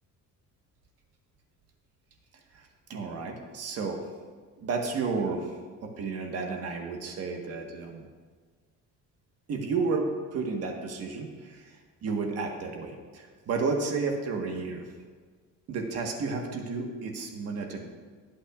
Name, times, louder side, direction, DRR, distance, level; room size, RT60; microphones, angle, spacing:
voice 1, 2.5-4.0 4.6-5.6 5.8-8.0 9.5-14.8 15.7-17.8, right 4 dB, 50° right, 2 dB, 1.4 m, -32 dB
22.0 x 8.7 x 2.4 m, 1.5 s
cardioid pair, 175°, 33 cm